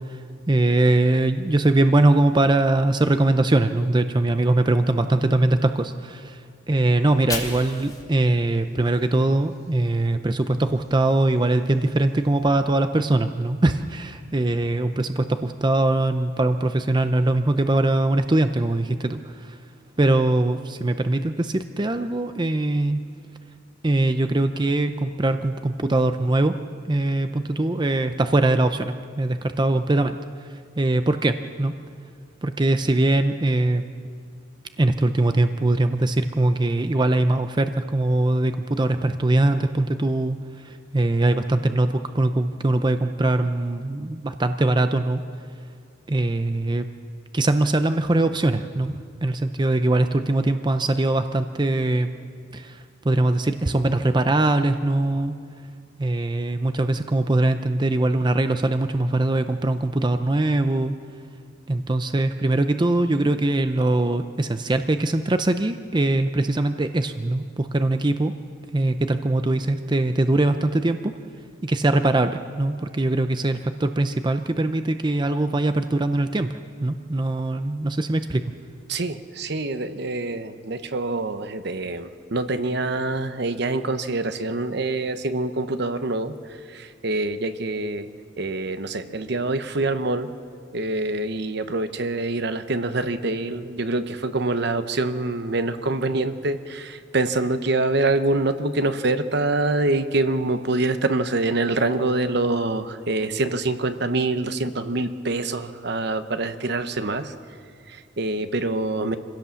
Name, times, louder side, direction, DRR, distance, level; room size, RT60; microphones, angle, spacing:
voice 1, 0.0-6.4 6.7-19.6 20.0-23.0 23.8-26.5 26.9-30.1 30.4-31.7 32.4-33.8 34.8-45.2 46.1-46.9 47.3-52.1 52.5-55.3 56.0-61.0 61.7-68.3 68.7-71.1 71.6-76.5 76.8-78.4, right 2 dB, 25° right, 8 dB, 0.6 m, -22 dB
Fire, 7.0-10.1 10.4-12.5, left 3 dB, 20° left, 2.7 m, -39 dB
voice 2, 78.9-88.1 88.4-90.3 90.7-107.3 107.9-109.2, right 2 dB, 60° right, 10 dB, 1.0 m, -25 dB
26.0 x 16.5 x 7.1 m, 2.2 s
head